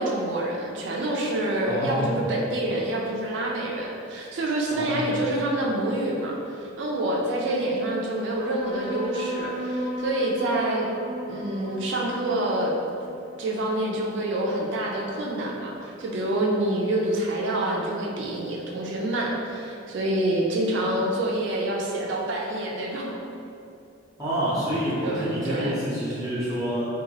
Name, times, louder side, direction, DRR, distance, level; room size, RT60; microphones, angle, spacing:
voice 1, 0.0-10.9 11.3-12.7 13.4-23.2 25.0-25.8, right 1 dB, 60° right, -1 dB, 0.3 m, -27 dB
voice 2, 1.7-2.1 4.7-5.0 24.2-26.9, equal, 15° right, -11 dB, 0.6 m, -27 dB
sound 1, 8.4-15.3, equal, 55° left, 0.9 m, -36 dB
2.8 x 2.3 x 2.8 m, 2.6 s
head